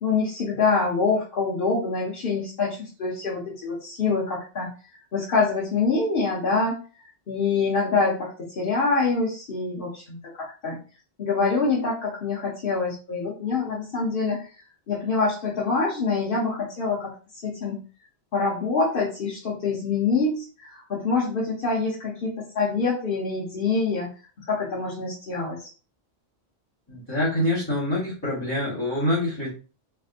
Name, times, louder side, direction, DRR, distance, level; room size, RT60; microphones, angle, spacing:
voice 1, 0.0-4.7 5.1-6.8 7.3-10.8 11.2-14.5 14.9-17.1 17.4-17.8 18.3-24.1 24.4-25.7, left 4 dB, 60° left, -4 dB, 1.0 m, -25 dB
voice 2, 26.9-29.5, left 1 dB, 25° left, -9 dB, 1.2 m, -25 dB
3.3 x 2.6 x 2.5 m, 0.36 s
omnidirectional pair, 1.1 m